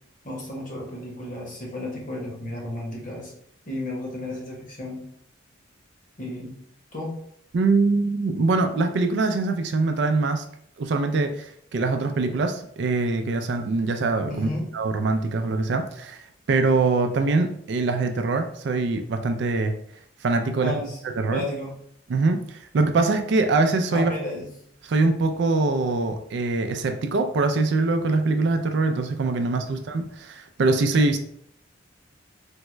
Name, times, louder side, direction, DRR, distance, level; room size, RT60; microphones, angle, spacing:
voice 1, 0.2-3.3 3.7-5.0 6.2-6.5 6.9-7.2 14.3-14.7 20.6-21.0 21.3-21.7 23.9-24.5 29.4-29.8, left 1 dB, 40° left, -2 dB, 0.9 m, -33 dB
voice 2, 7.5-10.4 10.8-16.2 16.5-19.8 20.2-20.7 21.2-21.4 22.1-24.1 24.8-31.2, right 3 dB, 60° right, 6 dB, 0.4 m, -23 dB
3.5 x 2.2 x 3.0 m, 0.67 s
head